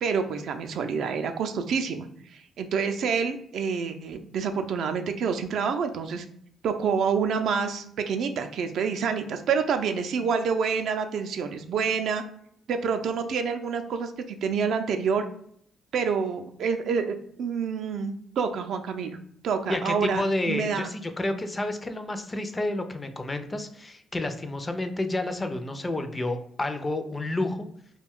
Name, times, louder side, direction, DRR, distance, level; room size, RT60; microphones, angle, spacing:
voice 1, 0.0-2.1 2.6-6.2 6.6-12.2 12.7-15.2 15.9-19.2 19.4-20.9, right 6 dB, 70° right, 7 dB, 0.3 m, -27 dB
voice 2, 19.7-27.7, left 2 dB, 20° left, 7 dB, 0.4 m, -30 dB
2.4 x 2.2 x 3.5 m, 0.66 s
cardioid pair, 90°, 0 cm